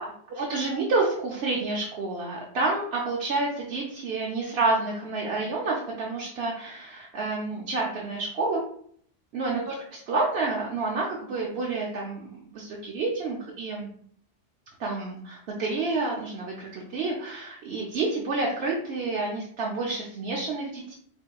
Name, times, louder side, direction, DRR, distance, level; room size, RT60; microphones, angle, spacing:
voice 1, 0.0-8.6 9.3-13.9 14.8-21.0, right 3 dB, 65° right, -3 dB, 0.9 m, -29 dB
4.5 x 3.2 x 2.3 m, 0.62 s
omnidirectional pair, 1.2 m